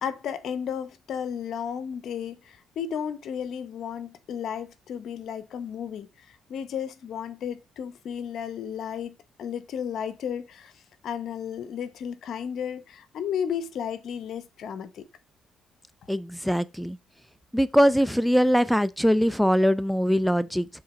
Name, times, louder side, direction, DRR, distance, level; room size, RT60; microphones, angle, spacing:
voice 1, 0.0-10.7 11.0-15.1, left 8 dB, 70° left, 0.8 m, -33 dB
voice 2, 16.1-17.0 17.5-20.7, equal, ahead, 0.4 m, -22 dB
7.1 x 3.8 x 4.8 m
cardioid pair, 90°, 0 cm